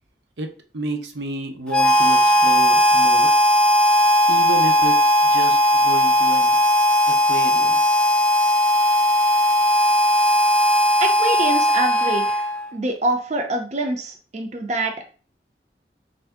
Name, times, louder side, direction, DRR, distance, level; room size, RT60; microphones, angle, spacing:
voice 1, 0.4-3.3 4.3-6.6 7.1-7.8, right 2 dB, 80° right, 5 dB, 0.7 m, -31 dB
Harmonica, 1.7-12.7, equal, 5° left, 0.4 m, -17 dB
voice 2, 11.0-12.4 12.7-15.1, right 2 dB, 40° right, 3 dB, 0.6 m, -25 dB
4.3 x 2.7 x 3.5 m, 0.38 s
head